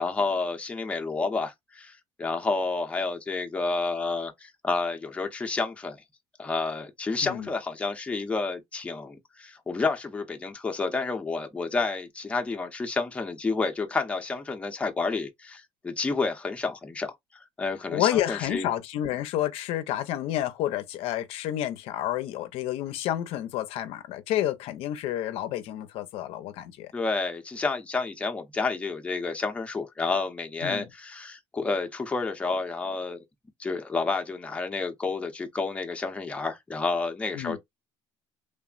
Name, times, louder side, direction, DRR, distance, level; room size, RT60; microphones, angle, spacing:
voice 1, 0.0-6.0 6.4-17.1 17.6-18.7 26.9-33.2 33.6-37.6, left 3 dB, 10° left, 0.6 m, -30 dB
voice 2, 17.9-26.9 30.6-30.8 37.3-37.6, left 12 dB, 70° left, 0.5 m, -30 dB
3.3 x 2.0 x 2.3 m
cardioid pair, 135°, 10 cm